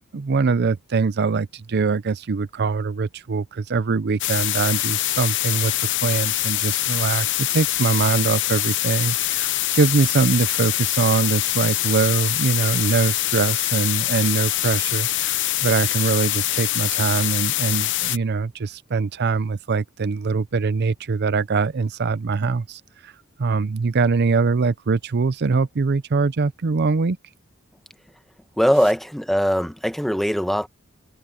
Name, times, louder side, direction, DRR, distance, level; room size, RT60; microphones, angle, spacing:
voice 1, 0.1-15.3 15.6-23.1 23.4-27.2, right 4 dB, 50° right, 0.5 m, -23 dB
sound 1, 4.2-18.2, left 15 dB, 60° left, 0.7 m, -24 dB
voice 2, 28.6-30.7, equal, ahead, 1.0 m, -21 dB
head